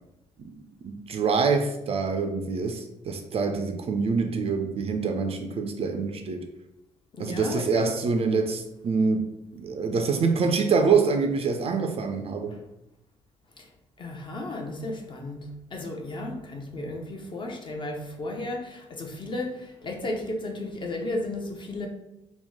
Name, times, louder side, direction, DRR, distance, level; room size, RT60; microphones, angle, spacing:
voice 1, 0.8-6.5 7.2-9.2 9.6-12.5, right 5 dB, 40° right, 5 dB, 0.4 m, -25 dB
voice 2, 7.1-8.0 12.5-12.6 13.6-13.7 14.0-21.9, left 2 dB, 30° left, 2 dB, 0.6 m, -34 dB
3.0 x 2.1 x 3.6 m, 0.89 s
figure-of-eight pair, 45°, 16 cm